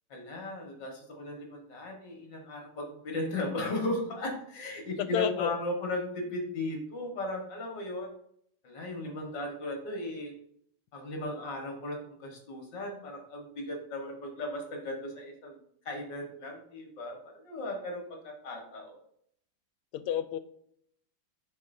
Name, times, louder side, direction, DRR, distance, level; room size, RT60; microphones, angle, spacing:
voice 1, 0.1-8.1 8.6-10.3 10.9-15.6 15.9-19.0, left 1 dB, 55° left, 2 dB, 2.0 m, -36 dB
voice 2, 5.0-5.6 19.9-20.4, left 10 dB, 85° left, 13 dB, 1.5 m, -30 dB
7.5 x 5.9 x 2.6 m, 0.68 s
omnidirectional pair, 2.4 m